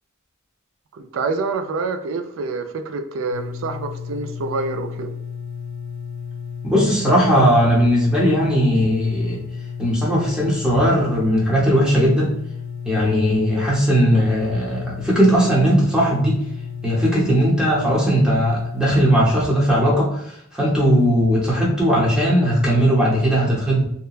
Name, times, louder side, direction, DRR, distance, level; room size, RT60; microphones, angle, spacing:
voice 1, 0.9-5.1, right 3 dB, 65° right, 8 dB, 0.3 m, -27 dB
sound 1, 3.3-19.2, left 7 dB, 60° left, 0.3 m, -33 dB
voice 2, 6.6-9.4 9.8-12.4 12.9-16.4 16.8-23.8, equal, 5° right, -5 dB, 0.8 m, -18 dB
2.8 x 2.2 x 2.3 m, 0.74 s
head